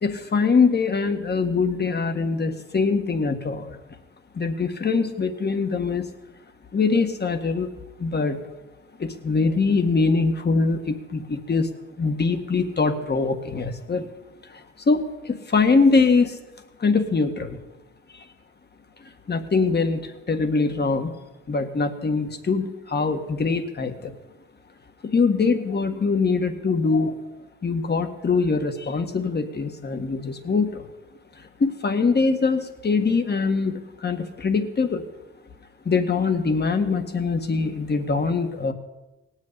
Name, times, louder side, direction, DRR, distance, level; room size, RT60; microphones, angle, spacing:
voice 1, 0.0-3.8 4.3-6.1 6.7-7.7 8.0-8.4 9.0-11.7 12.0-14.1 14.5-16.4 16.8-17.6 18.1-18.3 19.3-21.1 21.5-24.1 25.0-27.2 27.6-30.9 31.6-35.1 35.8-38.7, left 4 dB, 35° left, 7 dB, 1.7 m, -23 dB
18.0 x 6.5 x 9.6 m, 1.0 s
cardioid pair, 90°, 30 cm